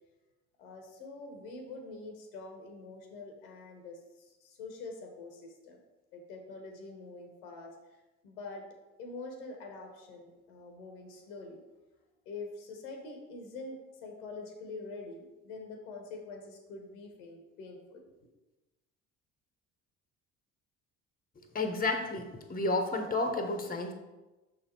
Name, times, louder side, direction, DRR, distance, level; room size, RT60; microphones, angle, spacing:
voice 1, 0.6-4.0 4.4-5.8 6.1-7.7 8.2-8.6 9.0-11.6 12.2-18.1, left 3 dB, 80° left, 3 dB, 1.2 m, -45 dB
voice 2, 21.5-23.9, left 2 dB, 20° left, 5 dB, 1.1 m, -31 dB
6.1 x 4.2 x 4.4 m, 1.1 s
hypercardioid pair, 55°, 42 cm